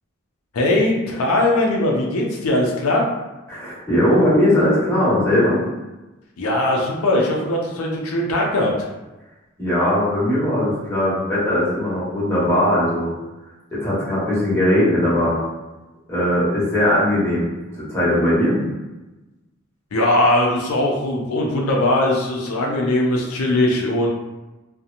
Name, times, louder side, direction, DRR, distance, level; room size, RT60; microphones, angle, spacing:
voice 1, 0.5-3.1 6.4-8.7 19.9-24.1, left 1 dB, 90° left, -1 dB, 0.5 m, -20 dB
voice 2, 3.5-5.6 9.6-13.1 13.7-15.4 16.1-17.5 17.8-18.6, left 1 dB, 10° left, -10 dB, 1.0 m, -19 dB
2.8 x 2.1 x 2.5 m, 1.1 s
head